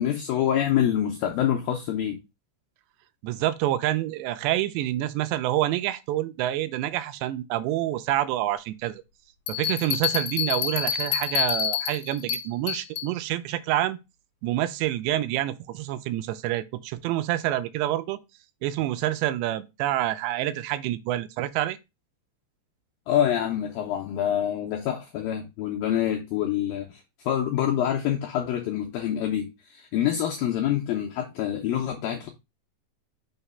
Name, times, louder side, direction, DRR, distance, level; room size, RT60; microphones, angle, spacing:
voice 1, 0.0-2.2 23.1-27.0 27.3-32.3, left 10 dB, 85° left, 2.0 m, -26 dB
voice 2, 3.2-9.0 9.5-14.0 14.4-18.2 18.6-21.8, right 14 dB, 85° right, 2.7 m, -27 dB
Bell, 9.5-13.1, left 10 dB, 65° left, 2.9 m, -28 dB
6.3 x 3.0 x 5.4 m
omnidirectional pair, 5.0 m